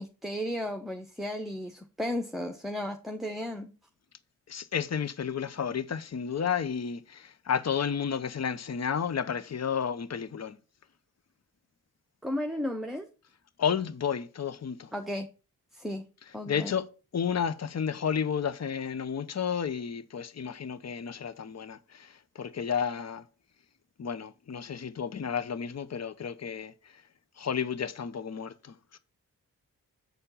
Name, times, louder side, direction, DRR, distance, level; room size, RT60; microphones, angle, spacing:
voice 1, 0.0-3.7 12.2-13.1 14.9-15.3 15.7-16.0 16.3-16.7, equal, ahead, 1.0 m, -34 dB
voice 2, 4.5-10.6 13.6-14.9 16.5-16.9 17.1-23.2 24.0-26.7 27.4-29.0, left 7 dB, 40° left, 0.8 m, -32 dB
8.1 x 4.3 x 5.5 m
cardioid pair, 45°, 38 cm